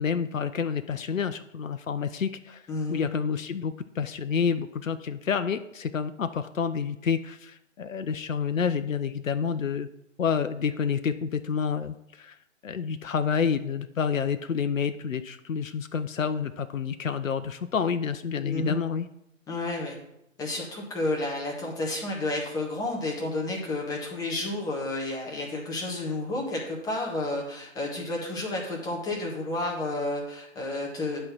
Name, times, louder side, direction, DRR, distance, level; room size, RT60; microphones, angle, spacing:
voice 1, 0.0-2.6 2.9-9.9 10.2-12.3 12.6-19.1, left 6 dB, 80° left, 10 dB, 0.6 m, -29 dB
voice 2, 2.7-3.0 18.4-18.8 19.5-20.0 20.4-31.2, left 2 dB, 10° left, -2 dB, 1.5 m, -31 dB
10.5 x 4.4 x 6.0 m, 0.81 s
figure-of-eight pair, 135°, 39 cm